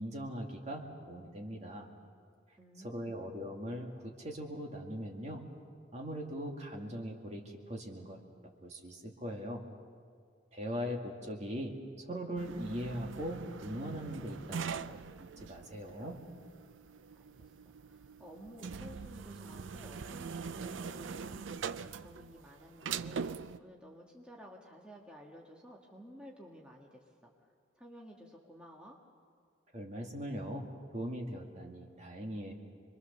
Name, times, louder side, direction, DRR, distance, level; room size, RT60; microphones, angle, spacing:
voice 1, 0.0-1.9 2.8-5.4 5.9-8.2 8.6-9.6 10.5-16.2 29.7-30.7 30.9-32.5, equal, 35° right, 1 dB, 2.2 m, -40 dB
voice 2, 2.6-3.3 17.2-27.3 27.8-29.0, equal, 5° right, -2 dB, 1.7 m, -53 dB
sound 1, 12.4-23.6, right 6 dB, 90° right, 0.5 m, -43 dB
27.0 x 22.5 x 6.9 m, 2.1 s
head